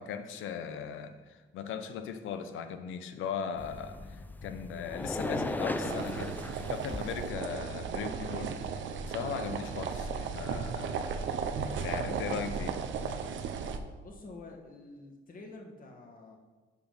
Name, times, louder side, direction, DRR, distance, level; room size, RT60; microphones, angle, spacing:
voice 1, 0.0-6.4 6.7-8.5 9.1-11.0 11.8-12.8, left 7 dB, 80° left, 9 dB, 0.7 m, -38 dB
sound 1, 3.6-7.3, left 1 dB, 10° left, 0.4 m, -37 dB
sound 2, 5.8-13.8, right 6 dB, 75° right, 0.7 m, -35 dB
voice 2, 14.0-16.4, left 3 dB, 45° left, 2 dB, 1.6 m, -48 dB
7.0 x 5.0 x 5.7 m, 1.3 s
cardioid pair, 90°, 20 cm